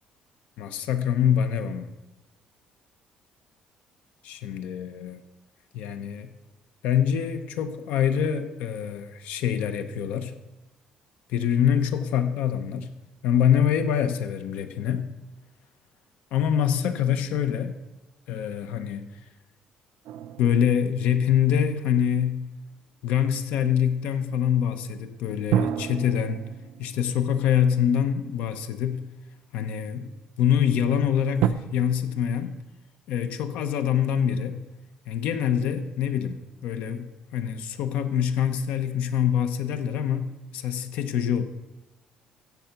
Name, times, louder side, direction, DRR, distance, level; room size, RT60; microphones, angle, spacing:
voice 1, 0.6-1.9 4.2-5.2 5.7-6.3 6.8-10.3 11.3-12.9 13.2-15.1 16.3-17.8 18.3-19.1 20.4-22.4 23.0-26.5 26.8-29.0 29.5-30.1 30.4-32.6 33.1-34.6 35.1-41.4, left 9 dB, 80° left, 9 dB, 1.0 m, -25 dB
sound 1, 20.0-22.6 25.5-28.9 29.6-29.7 31.4-31.5, right 10 dB, 80° right, 0.6 m, -31 dB
16.0 x 6.7 x 5.9 m, 1.1 s
cardioid pair, 160°, 2 cm